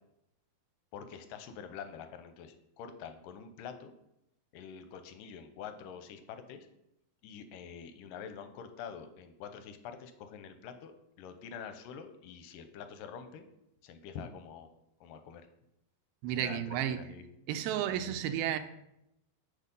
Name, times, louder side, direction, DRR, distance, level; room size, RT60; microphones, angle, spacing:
voice 1, 0.9-3.9 4.5-6.7 7.2-10.9 11.2-13.5 13.8-14.7 15.0-15.4 16.3-17.2 17.9-18.2, left 7 dB, 80° left, 9 dB, 2.2 m, -46 dB
voice 2, 16.2-17.0 17.5-18.6, right 10 dB, 85° right, 8 dB, 2.4 m, -32 dB
8.4 x 6.3 x 5.3 m, 0.82 s
omnidirectional pair, 4.2 m